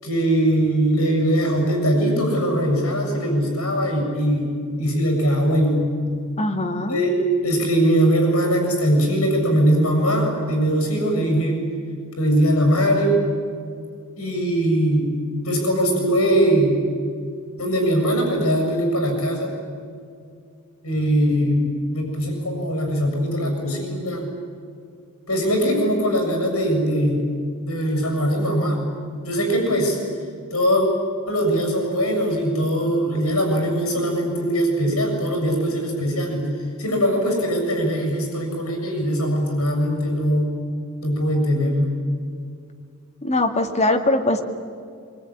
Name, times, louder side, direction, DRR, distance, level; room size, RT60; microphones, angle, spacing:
voice 1, 0.0-4.5 4.8-5.9 6.9-11.6 12.2-13.1 14.2-15.1 15.4-16.8 17.6-19.5 20.8-24.3 25.3-27.2 27.7-28.9 29.2-30.0 30.5-30.8 31.3-36.5 36.8-40.5 41.0-41.9, equal, 80° left, 2 dB, 7.1 m, -21 dB
voice 2, 6.4-7.0 43.2-44.4, left 2 dB, 30° left, 4 dB, 2.0 m, -21 dB
24.5 x 23.5 x 9.9 m, 2.3 s
head